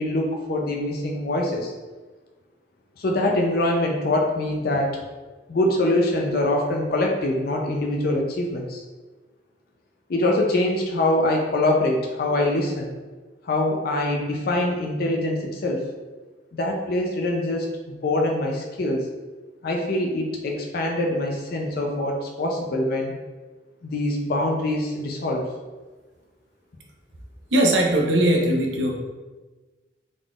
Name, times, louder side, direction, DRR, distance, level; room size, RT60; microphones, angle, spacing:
voice 1, 0.0-1.7 3.0-5.0 5.5-8.8 10.1-12.9 13.4-15.9 16.5-19.1 19.6-23.1 23.8-25.5, left 1 dB, 55° left, 0 dB, 0.5 m, -24 dB
voice 2, 27.5-28.9, right 1 dB, 85° right, 0 dB, 0.7 m, -19 dB
3.8 x 3.6 x 2.4 m, 1.3 s
head